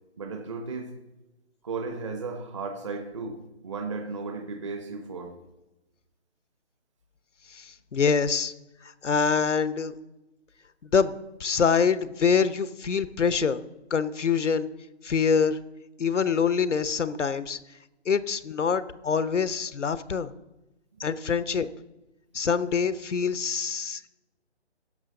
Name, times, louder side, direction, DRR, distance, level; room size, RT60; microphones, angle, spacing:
voice 1, 0.2-0.9 1.6-3.4 3.6-5.4, right 4 dB, 25° right, 5 dB, 0.8 m, -34 dB
voice 2, 7.5-8.5 9.0-9.9 10.9-11.1 11.4-13.6 13.9-14.7 15.0-15.6 16.0-17.6 18.1-20.3 21.0-21.7 22.3-24.1, left 6 dB, 90° left, 15 dB, 0.8 m, -25 dB
16.5 x 6.3 x 3.8 m, 1.0 s
figure-of-eight pair, 160°, 35 cm